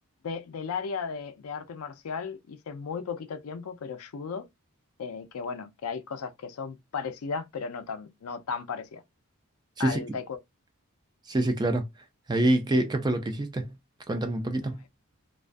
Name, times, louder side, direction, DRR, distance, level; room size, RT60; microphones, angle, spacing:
voice 1, 0.2-4.5 5.0-9.0 9.8-10.4, left 5 dB, 75° left, 0.4 m, -35 dB
voice 2, 11.3-11.9 12.3-13.7 14.1-14.8, right 2 dB, 20° right, 0.3 m, -26 dB
2.3 x 2.2 x 2.5 m
head